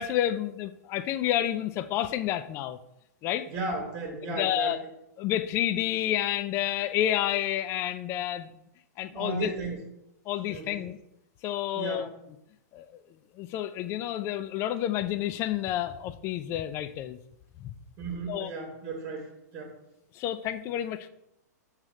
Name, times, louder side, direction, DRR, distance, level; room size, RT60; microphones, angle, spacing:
voice 1, 0.0-2.8 3.2-3.5 4.3-4.8 5.2-8.5 9.0-9.5 10.3-11.0 11.4-12.1 12.7-12.9 13.4-17.2 17.6-17.7 18.3-18.5 20.1-21.1, left 12 dB, 30° left, 13 dB, 0.3 m, -29 dB
voice 2, 3.5-4.7 9.1-9.9 10.5-10.9 11.7-12.1 18.0-19.3 19.5-19.8, right 3 dB, 25° right, 1 dB, 1.2 m, -35 dB
6.4 x 3.2 x 4.9 m, 0.80 s
hypercardioid pair, 145°, 9 cm